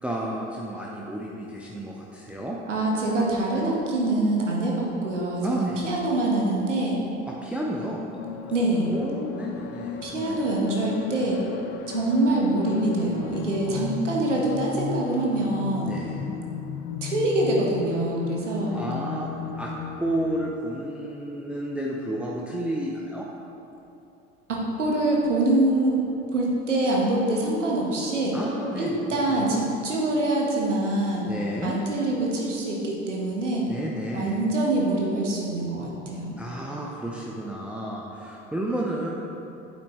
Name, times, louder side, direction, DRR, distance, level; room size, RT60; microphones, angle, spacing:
voice 1, 0.0-2.6 5.4-5.8 7.3-8.0 8.9-10.4 13.7-14.0 15.8-16.4 18.7-19.3 19.6-19.7 20.0-23.3 28.3-29.6 31.3-31.8 33.7-34.4 36.4-39.1, right 1 dB, 5° right, -3 dB, 0.7 m, -32 dB
voice 2, 2.7-7.0 8.5-8.9 10.0-11.4 11.9-15.9 17.0-18.7 24.5-26.0 26.3-28.3 28.7-31.3 31.6-33.6 34.1-36.4, right 2 dB, 85° right, -3 dB, 1.5 m, -25 dB
sound 1, 8.2-20.5, left 7 dB, 35° left, 0.5 m, -35 dB
8.5 x 8.4 x 3.1 m, 2.9 s
figure-of-eight pair, 70°, 36 cm